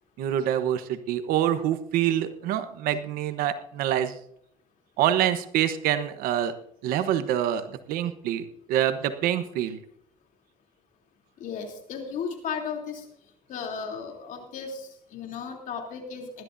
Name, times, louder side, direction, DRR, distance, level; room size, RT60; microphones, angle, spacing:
voice 1, 0.2-4.2 5.0-6.5 6.8-9.8, right 11 dB, 80° right, 10 dB, 1.0 m, -26 dB
voice 2, 11.4-13.0 13.5-16.3, left 6 dB, 65° left, 3 dB, 3.2 m, -35 dB
20.0 x 12.5 x 2.7 m, 0.69 s
cardioid pair, 105°, 15 cm